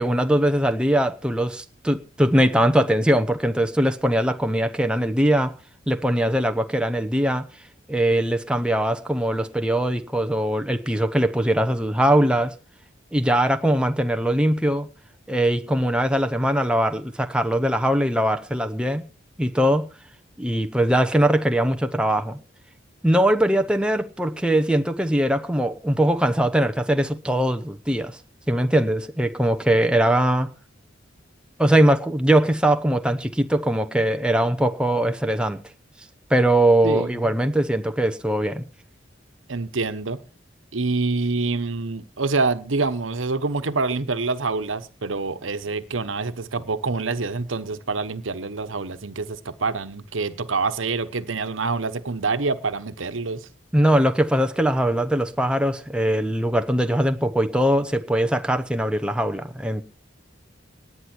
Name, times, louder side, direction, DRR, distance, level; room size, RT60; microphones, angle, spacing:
voice 1, 0.0-5.5 5.9-7.5 7.9-12.5 13.1-14.9 15.3-19.0 19.4-19.9 20.4-22.4 23.0-28.2 28.5-30.5 31.6-35.6 36.3-38.6 53.7-59.8, right 1 dB, 5° right, 0.9 m, -21 dB
voice 2, 36.8-37.3 39.5-40.2 40.7-53.5, right 3 dB, 85° right, 1.1 m, -26 dB
18.5 x 9.6 x 4.5 m
head